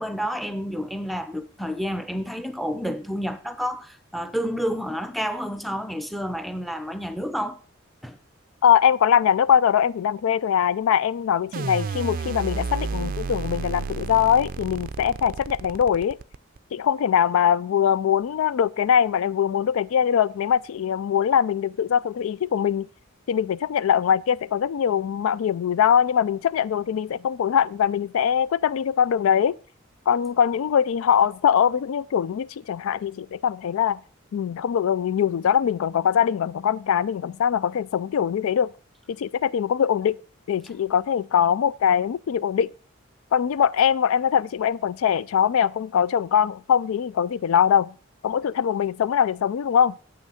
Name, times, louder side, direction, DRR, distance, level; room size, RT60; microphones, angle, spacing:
voice 1, 0.0-7.6 8.0-8.2, equal, ahead, 0.6 m, -30 dB
voice 2, 8.6-16.2 16.7-22.9 23.3-29.6 30.1-34.0 34.3-38.7 39.2-40.2 40.5-42.7 43.3-47.9 48.2-49.9, left 8 dB, 80° left, 0.3 m, -22 dB
sound 1, 11.5-16.6, right 4 dB, 45° right, 0.4 m, -31 dB
8.3 x 6.3 x 5.6 m
head